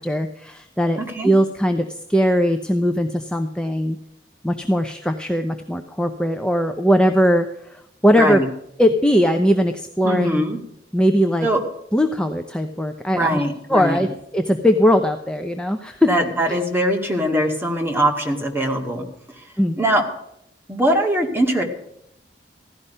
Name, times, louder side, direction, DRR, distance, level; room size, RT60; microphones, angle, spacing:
voice 1, 0.0-4.0 4.4-8.4 8.8-10.5 10.9-11.5 11.9-13.4 13.7-14.1 14.3-16.1 16.5-16.6 19.6-19.8, equal, 5° left, 5 dB, 0.7 m, -20 dB
voice 2, 1.0-1.3 8.1-8.5 10.0-10.6 11.4-11.6 13.1-14.1 16.1-19.1 19.8-20.0 20.7-21.6, right 1 dB, 15° right, 1 dB, 2.0 m, -21 dB
16.0 x 12.0 x 5.5 m, 0.79 s
head